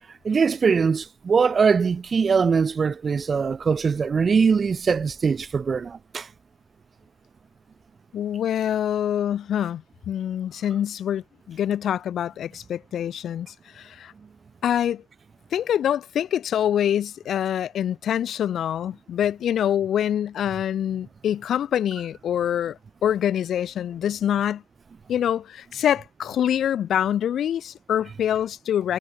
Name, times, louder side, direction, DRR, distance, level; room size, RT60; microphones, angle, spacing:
voice 1, 0.2-6.3, right 5 dB, 35° right, 1.2 m, -22 dB
voice 2, 8.1-14.1 14.6-15.0 15.5-24.6 25.1-29.0, left 10 dB, 55° left, 1.3 m, -25 dB
hypercardioid pair, 65°, 0 cm